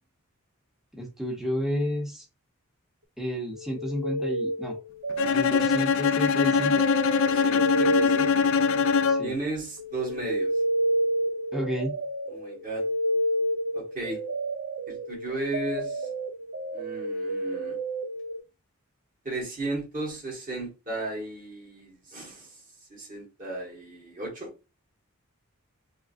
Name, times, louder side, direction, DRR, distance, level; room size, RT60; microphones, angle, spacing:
voice 1, 0.9-2.3 3.2-4.8 5.3-6.8 9.1-9.4 11.5-11.9, equal, ahead, 0 dB, 0.8 m, -31 dB
sound 1, 3.5-9.5 9.8-18.4, right 1 dB, 55° right, 0.5 m, -30 dB
Bowed string instrument, 5.2-9.4, left 6 dB, 60° left, 0.3 m, -23 dB
voice 2, 7.2-8.5 9.2-10.5 12.3-12.8 13.7-14.2 14.9-16.1 16.7-17.8 19.2-22.6 22.9-24.5, right 2 dB, 40° right, -3 dB, 1.5 m, -35 dB
3.6 x 3.2 x 2.5 m, 0.29 s
head